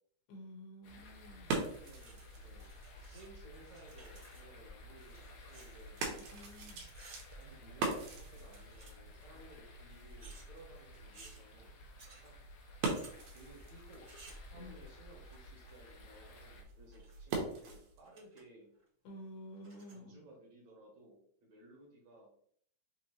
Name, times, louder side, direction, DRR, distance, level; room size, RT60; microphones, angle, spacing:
voice 1, 0.3-1.5 6.3-6.8 14.5-14.7 19.0-20.2, equal, 90° left, 0 dB, 2.7 m, -51 dB
sound 1, 0.8-16.6, left 2 dB, 70° left, 1.6 m, -56 dB
sound 2, 0.9-18.1, right 3 dB, 80° right, 2.4 m, -44 dB
voice 2, 1.4-2.6 3.0-6.0 7.3-11.7 12.2-12.4 13.3-14.1 14.5-18.7 19.9-22.3, right 1 dB, 65° right, -2 dB, 2.4 m, -58 dB
sound 3, 1.9-3.3 3.5-6.5 6.8-8.0 8.4-9.2 10.2-10.5 11.1-11.4 12.0-12.3 12.8-13.2 14.1-14.5 15.6-16.0 16.7-17.3 17.7-17.8 18.1-18.4 18.8-18.9 19.6-20.0, right 3 dB, 35° right, 1.2 m, -59 dB
6.0 x 2.8 x 2.9 m, 0.63 s
omnidirectional pair, 3.6 m